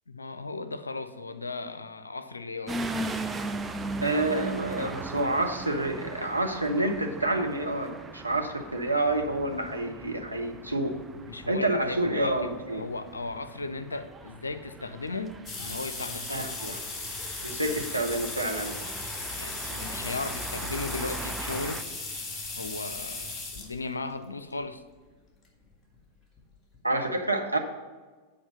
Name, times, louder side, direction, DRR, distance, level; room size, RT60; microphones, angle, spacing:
voice 1, 0.1-2.8 11.3-16.5 19.3-21.9 22.6-24.8, left 3 dB, 80° left, 11 dB, 0.5 m, -36 dB
sound 1, 2.7-21.8, right 2 dB, 15° right, 0.5 m, -39 dB
voice 2, 4.0-10.9 11.5-12.8 16.3-16.8 17.4-18.7 26.8-27.6, right 1 dB, 85° right, 3 dB, 0.8 m, -28 dB
sound 2, 15.5-23.7 24.6-24.7 25.9-26.0 26.4-26.5 26.7-26.8, left 3 dB, 15° left, 2.0 m, -37 dB
8.6 x 4.9 x 6.7 m, 1.4 s
figure-of-eight pair, 90°, 0 cm